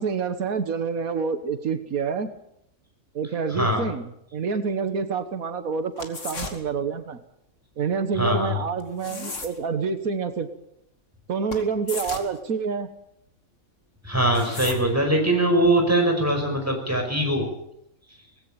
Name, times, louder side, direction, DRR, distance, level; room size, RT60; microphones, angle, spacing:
voice 1, 0.0-2.3 3.1-7.2 7.8-10.5 11.3-12.9, right 5 dB, 85° right, 10 dB, 1.8 m, -27 dB
voice 2, 3.5-3.9 8.1-8.6 14.0-17.5 18.1-18.2, right 1 dB, 10° right, 3 dB, 5.3 m, -22 dB
sound 1, 6.0-6.6 8.8-9.6 11.5-11.6 11.9-12.4 14.2-14.8, left 3 dB, 60° left, 2.7 m, -34 dB
19.0 x 16.5 x 8.9 m, 0.77 s
omnidirectional pair, 1.4 m